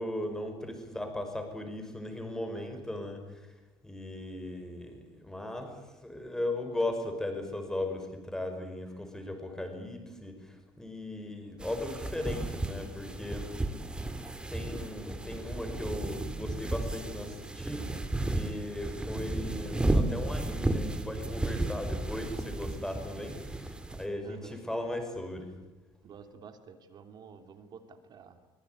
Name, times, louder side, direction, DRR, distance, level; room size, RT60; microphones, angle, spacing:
voice 1, 0.0-3.5 3.8-5.7 6.0-13.5 14.5-25.5, left 1 dB, 5° left, 5 dB, 5.8 m, -37 dB
sound 1, 11.6-24.0, right 2 dB, 10° right, 2.5 m, -33 dB
voice 2, 24.2-24.6 26.0-28.4, right 6 dB, 45° right, 7 dB, 3.0 m, -50 dB
24.5 x 22.0 x 9.6 m, 1.1 s
cardioid pair, 140°, 10 cm